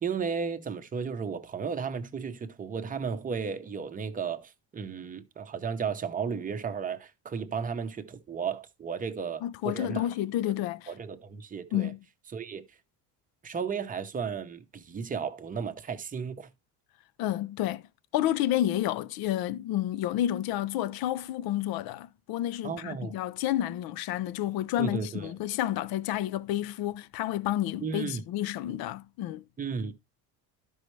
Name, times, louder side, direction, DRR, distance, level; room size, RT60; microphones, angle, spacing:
voice 1, 0.0-10.1 10.4-10.5 10.9-11.9 12.3-12.6 13.4-16.5 22.6-23.2 24.8-25.3 27.8-28.2 29.6-29.9, right 6 dB, 20° right, 0.7 m, -34 dB
voice 2, 9.4-10.9 11.7-12.0 17.2-17.8 18.1-29.4, left 13 dB, 60° left, 0.6 m, -30 dB
12.0 x 5.5 x 3.1 m
cardioid pair, 160°, 42 cm